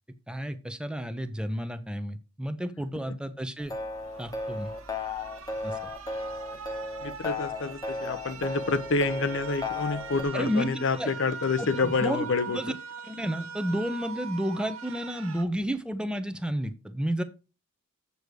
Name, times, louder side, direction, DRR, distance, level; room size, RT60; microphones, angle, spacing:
voice 1, 0.3-3.7 4.2-4.7 5.6-5.8 10.3-12.7 13.0-17.2, equal, 5° right, 0.6 m, -31 dB
sound 1, 3.6-10.2, left 3 dB, 15° left, 1.1 m, -35 dB
sound 2, 3.9-15.4, right 6 dB, 70° right, 1.3 m, -42 dB
voice 2, 7.0-12.6, left 4 dB, 55° left, 0.7 m, -28 dB
7.9 x 6.9 x 4.8 m
head